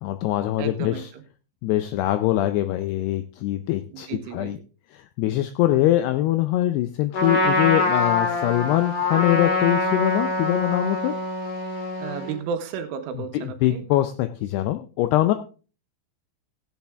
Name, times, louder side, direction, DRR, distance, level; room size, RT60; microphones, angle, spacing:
voice 1, 0.0-1.1 1.6-4.6 4.9-11.1 13.3-15.3, left 14 dB, 85° left, 10 dB, 2.3 m, -23 dB
voice 2, 0.6-1.2 3.9-4.5 5.7-5.9 12.0-13.8, right 7 dB, 90° right, 6 dB, 3.7 m, -33 dB
Trumpet, 7.1-12.4, left 2 dB, 50° left, 3.7 m, -24 dB
15.5 x 8.6 x 3.5 m, 0.35 s
omnidirectional pair, 5.4 m